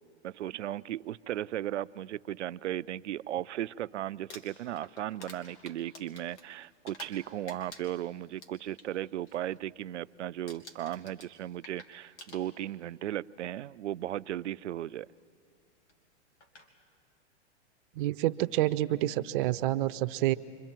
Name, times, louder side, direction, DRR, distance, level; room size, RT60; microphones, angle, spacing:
voice 1, 0.2-15.1, right 12 dB, 85° right, 17 dB, 0.5 m, -36 dB
Crumpling crinkling, 4.1-7.2 7.5-8.9 9.3-9.6 9.8-10.2 10.5-12.9 13.8-13.9 15.9-16.0 16.4-16.7, left 2 dB, 80° left, 2.9 m, -50 dB
voice 2, 18.0-20.3, right 15 dB, 50° right, 13 dB, 0.7 m, -28 dB
29.5 x 24.5 x 4.5 m, 2.3 s
hypercardioid pair, 120°, 34 cm